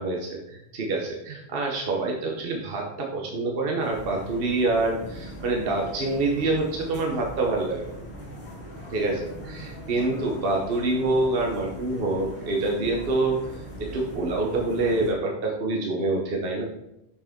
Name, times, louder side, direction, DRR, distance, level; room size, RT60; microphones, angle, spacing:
voice 1, 0.0-7.9 8.9-13.4 13.9-16.6, right 2 dB, 60° right, 0 dB, 1.2 m, -26 dB
sound 1, 3.8-15.1, equal, 90° left, 2.2 m, -40 dB
6.4 x 6.1 x 3.6 m, 0.84 s
omnidirectional pair, 1.1 m